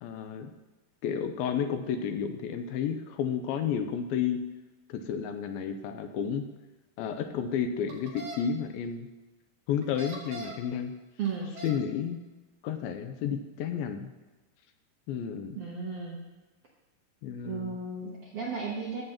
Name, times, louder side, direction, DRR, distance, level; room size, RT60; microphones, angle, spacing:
voice 1, 0.0-0.5 1.0-4.4 4.9-6.5 7.0-9.1 9.7-10.9 11.6-12.2 12.6-14.1 15.1-15.6 17.2-17.8, left 7 dB, 85° left, 7 dB, 2.4 m, -31 dB
sound 1, 7.9-8.4 9.8-10.7 11.3-11.8, right 2 dB, 90° right, 3.9 m, -41 dB
voice 2, 11.2-11.5 15.5-16.2 17.4-19.0, right 5 dB, 65° right, -4 dB, 1.5 m, -34 dB
14.0 x 7.7 x 2.9 m, 1.2 s
omnidirectional pair, 4.4 m